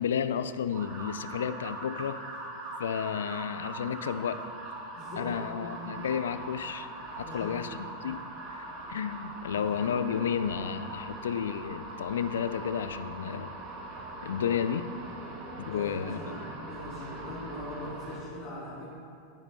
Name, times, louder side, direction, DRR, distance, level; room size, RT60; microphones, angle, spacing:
voice 1, 0.0-2.2 2.8-4.4 5.2-6.9 7.2-7.7 8.0-8.2 8.5-13.5 14.2-14.9 15.6-16.2, left 8 dB, 70° left, 12 dB, 0.5 m, -32 dB
sound 1, 0.7-18.2, right 2 dB, 50° right, 3.4 m, -41 dB
voice 2, 4.9-6.1 7.2-7.8 9.4-10.1 15.6-18.8, left 1 dB, 50° left, -8 dB, 3.3 m, -41 dB
17.0 x 10.0 x 3.2 m, 2.4 s
figure-of-eight pair, 85°, 0 cm